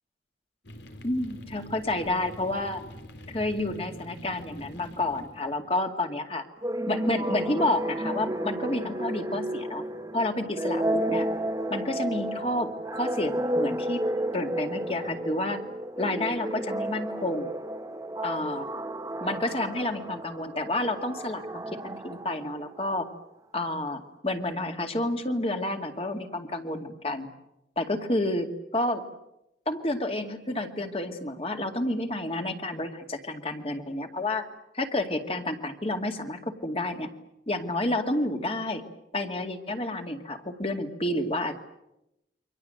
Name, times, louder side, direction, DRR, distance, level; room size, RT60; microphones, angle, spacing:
sound 1, 0.6-5.7, equal, 85° left, 3.8 m, -45 dB
voice 1, 1.0-2.8 3.3-6.4 6.9-9.8 10.1-11.3 11.7-14.0 14.3-15.6 16.0-17.5 18.2-18.6 19.2-23.1 23.5-27.3 27.8-29.0 29.7-34.4 34.7-37.1 37.5-38.8 39.1-41.5, left 1 dB, 35° left, 5 dB, 2.3 m, -30 dB
sound 2, 6.6-23.0, right 1 dB, 20° right, 1.2 m, -32 dB
29.0 x 24.5 x 7.8 m, 0.87 s
head